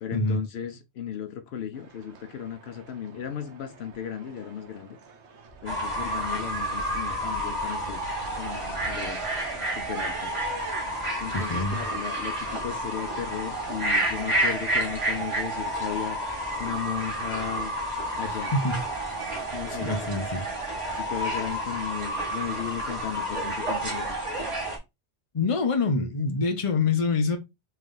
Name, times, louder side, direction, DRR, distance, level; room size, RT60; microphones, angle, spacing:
voice 1, 0.0-5.0 5.6-8.1 8.4-9.3 9.8-10.4 11.2-17.7 18.2-18.5 19.5-20.3 21.0-24.2, left 8 dB, 70° left, 0.8 m, -35 dB
sound 1, 1.7-20.4, right 3 dB, 80° right, 1.1 m, -46 dB
Fowl / Bird, 5.7-24.8, right 1 dB, 30° right, 1.4 m, -30 dB
voice 2, 11.3-11.8 18.3-18.8 19.7-20.4 25.3-27.4, left 3 dB, 35° left, 0.7 m, -26 dB
3.4 x 3.2 x 3.7 m
omnidirectional pair, 1.1 m